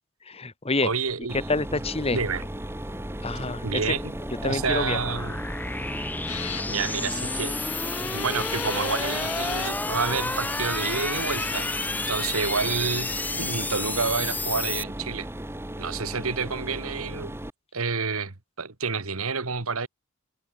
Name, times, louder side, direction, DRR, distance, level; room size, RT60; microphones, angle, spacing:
voice 1, 0.2-0.9 1.3-2.2 3.2-3.8 4.4-5.0, left 3 dB, 30° left, 1.5 m, -27 dB
voice 2, 0.8-1.4 2.1-2.4 3.6-4.1 4.4-5.4 6.7-7.6 8.0-11.7 12.1-13.1 13.4-15.3 15.8-17.4 17.7-19.9, right 5 dB, 75° right, 1.8 m, -29 dB
sound 1, 1.2-14.8, left 2 dB, 10° left, 0.5 m, -32 dB
Mechanisms, 1.3-17.5, right 1 dB, 10° right, 1.9 m, -36 dB
sound 2, 6.3-12.5, left 10 dB, 90° left, 5.6 m, -38 dB
head